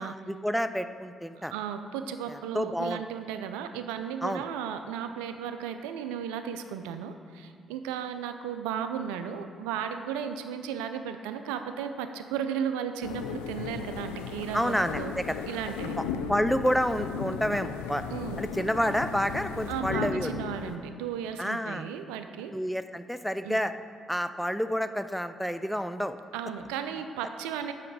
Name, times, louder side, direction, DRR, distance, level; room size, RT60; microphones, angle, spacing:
voice 1, 0.0-1.5 2.3-3.0 4.2-4.5 14.5-15.4 16.0-16.1 16.3-18.0 18.4-20.3 21.4-21.9 22.5-23.7 24.1-26.2, equal, ahead, 10 dB, 0.5 m, -29 dB
voice 2, 1.4-15.1 15.5-16.0 18.1-18.5 19.7-22.5 23.4-23.6 26.3-27.7, right 8 dB, 85° right, 8 dB, 0.4 m, -35 dB
sound 1, 13.0-20.8, left 6 dB, 90° left, 0.4 m, -36 dB
7.7 x 5.8 x 4.8 m, 2.1 s
hypercardioid pair, 50°, 0 cm